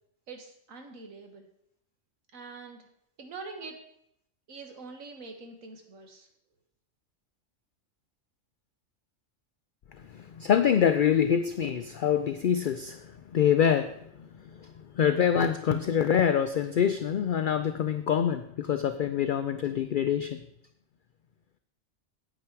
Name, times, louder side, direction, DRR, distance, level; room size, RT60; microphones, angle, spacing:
voice 1, 0.3-1.5 2.3-2.9 3.2-3.8 4.5-6.3, right 4 dB, 90° right, 4 dB, 1.7 m, -44 dB
voice 2, 10.1-13.9 14.6-20.4, left 8 dB, 65° left, 9 dB, 0.5 m, -25 dB
8.8 x 8.4 x 4.6 m, 0.74 s
omnidirectional pair, 1.4 m